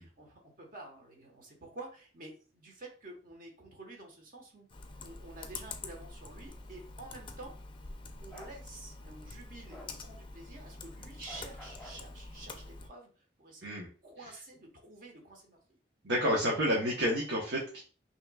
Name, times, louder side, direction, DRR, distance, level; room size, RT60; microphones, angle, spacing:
voice 1, 0.0-4.7 5.0-7.5 8.2-13.1 13.4-15.8, right 2 dB, 50° right, 1 dB, 1.3 m, -49 dB
Computer keyboard, 4.7-12.9, left 3 dB, 30° left, 0.5 m, -46 dB
Bark, 8.3-8.6 9.7-9.9 11.3-12.0, equal, ahead, 0.9 m, -50 dB
voice 2, 16.0-17.8, equal, 85° right, -3 dB, 1.0 m, -29 dB
5.5 x 3.0 x 2.3 m, 0.37 s
head